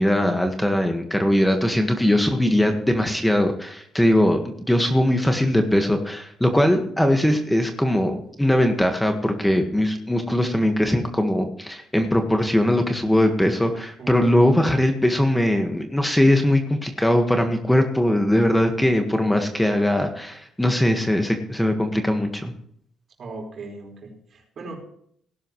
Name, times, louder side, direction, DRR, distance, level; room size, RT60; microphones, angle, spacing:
voice 1, 0.0-22.5, left 1 dB, 5° left, 5 dB, 1.6 m, -20 dB
voice 2, 14.0-14.8 23.2-24.8, right 2 dB, 55° right, 1 dB, 4.8 m, -38 dB
18.5 x 11.0 x 3.2 m, 0.66 s
cardioid pair, 90°, 0 cm